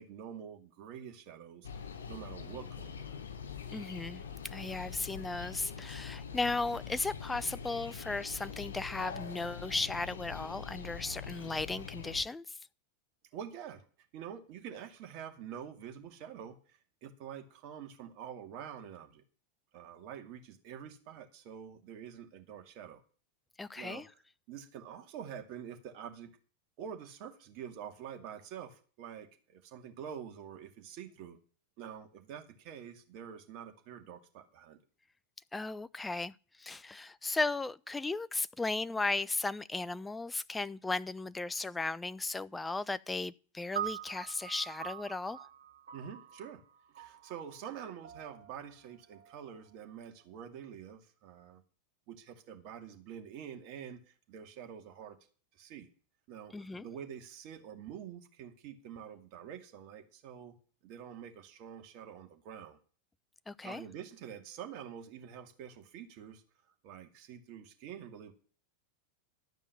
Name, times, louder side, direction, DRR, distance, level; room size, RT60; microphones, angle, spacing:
voice 1, 0.0-3.2 13.3-13.8 14.1-19.2 19.7-23.0 23.8-24.1 24.5-26.3 26.8-31.4 31.8-34.8 45.9-46.6 46.9-51.6 52.1-55.2 55.5-55.9 56.3-60.6 60.8-62.8 63.6-66.4 66.8-68.3, right 8 dB, 50° right, 2.3 m, -47 dB
sound 1, 1.6-12.2, left 6 dB, 75° left, 2.8 m, -44 dB
voice 2, 3.7-12.4 23.6-24.1 35.5-45.5 56.5-56.9 63.5-63.8, left 3 dB, 10° left, 0.5 m, -36 dB
sound 2, 43.8-50.2, right 10 dB, 75° right, 1.9 m, -45 dB
12.0 x 5.4 x 8.3 m
hypercardioid pair, 90°, 0 cm